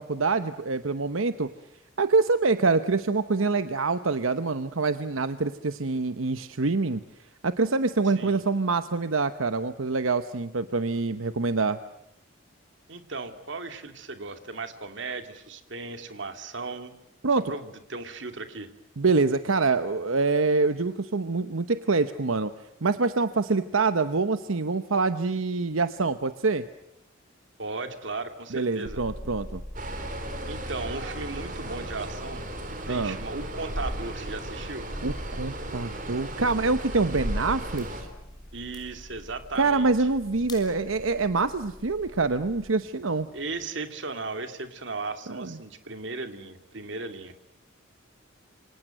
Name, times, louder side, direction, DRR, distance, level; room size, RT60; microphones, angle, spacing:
voice 1, 0.0-1.5 2.0-7.0 7.4-11.8 17.2-17.4 19.0-22.5 22.8-26.6 28.5-29.6 32.9-33.2 35.0-38.1 39.6-43.3 45.3-45.6, right 3 dB, 85° right, 11 dB, 1.0 m, -25 dB
voice 2, 8.0-8.4 12.9-17.0 17.5-18.7 27.6-29.0 30.5-34.9 38.5-40.1 43.3-47.3, right 3 dB, 60° right, 8 dB, 2.5 m, -36 dB
sound 1, 28.8-42.7, equal, 50° left, 2.7 m, -44 dB
sound 2, 29.7-38.0, right 1 dB, 40° right, 4.3 m, -35 dB
sound 3, 37.3-43.7, left 3 dB, 20° left, 6.4 m, -54 dB
28.0 x 25.0 x 7.8 m, 0.82 s
head